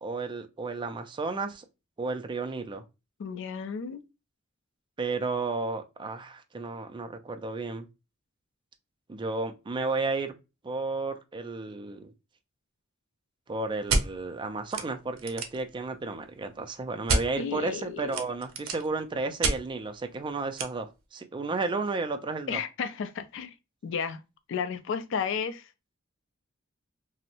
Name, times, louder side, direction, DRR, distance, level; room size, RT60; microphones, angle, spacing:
voice 1, 0.0-1.6 2.0-2.8 5.0-7.9 9.1-10.3 10.6-12.1 13.5-22.6, right 3 dB, 25° right, 0.3 m, -33 dB
voice 2, 3.2-4.1 17.4-18.2 22.5-23.5 23.8-24.2 24.5-25.7, left 6 dB, 65° left, 0.4 m, -33 dB
sound 1, 13.9-14.1 14.7-14.8 15.1-15.6 17.1-17.2 18.1-18.9 19.4-19.6 20.6-20.7, right 3 dB, 75° right, 0.5 m, -27 dB
2.6 x 2.0 x 2.7 m
head